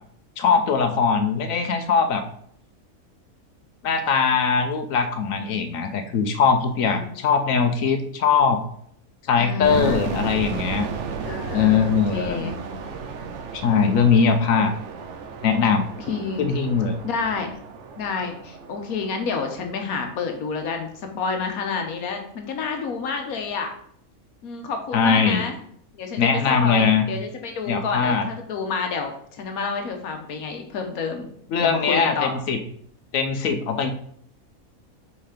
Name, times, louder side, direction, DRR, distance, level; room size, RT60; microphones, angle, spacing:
voice 1, 0.4-2.2 3.8-8.6 9.3-10.9 11.5-12.5 13.5-14.7 15.4-15.8 16.4-17.0 24.9-25.5 26.2-27.1 27.7-28.3 31.5-32.6 33.1-33.9, left 6 dB, 70° left, 7 dB, 1.1 m, -21 dB
voice 2, 9.4-10.2 11.2-12.6 16.1-16.5 17.0-17.5 18.0-23.7 24.4-25.5 25.9-31.3 31.6-32.4, left 5 dB, 90° left, 4 dB, 1.4 m, -29 dB
sound 1, 9.6-20.5, right 5 dB, 60° right, 1.0 m, -34 dB
5.6 x 4.8 x 4.9 m, 0.64 s
omnidirectional pair, 1.5 m